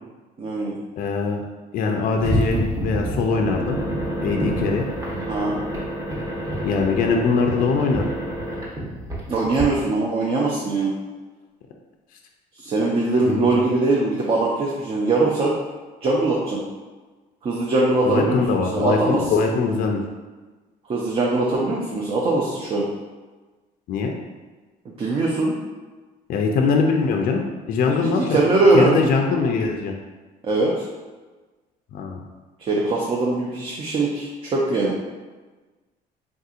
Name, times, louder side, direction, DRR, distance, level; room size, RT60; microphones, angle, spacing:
voice 1, 0.4-0.8 5.3-5.6 9.3-10.9 12.6-15.5 16.0-16.6 17.4-18.4 18.7-19.3 20.9-22.9 25.0-25.5 27.9-28.9 30.4-30.8 32.6-35.0, right 2 dB, 35° right, -3 dB, 0.5 m, -21 dB
voice 2, 1.0-1.4 1.7-3.8 4.2-4.9 6.6-8.0 13.2-13.5 18.0-20.0 23.9-24.1 26.3-28.4 28.7-29.9 31.9-32.2, left 4 dB, 55° left, 2 dB, 0.4 m, -22 dB
sound 1, 2.2-9.6, right 1 dB, 20° right, 0.9 m, -28 dB
3.5 x 2.7 x 2.4 m, 1.3 s
cardioid pair, 110°, 17 cm